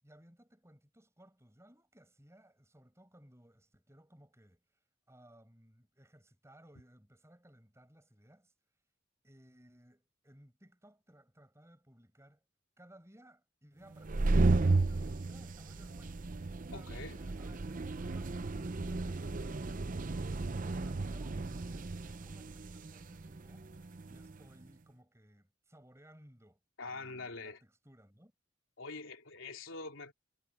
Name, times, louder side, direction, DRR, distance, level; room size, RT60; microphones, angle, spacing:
voice 1, 0.0-8.5 9.2-12.4 12.8-16.3 16.6-20.1 20.5-26.6 26.9-28.3, equal, 15° right, 5.8 m, -61 dB
sound 1, 13.9-24.4, right 3 dB, 40° right, 0.6 m, -34 dB
voice 2, 16.7-17.2 26.8-27.6 28.8-30.1, left 3 dB, 85° left, 3.3 m, -44 dB
head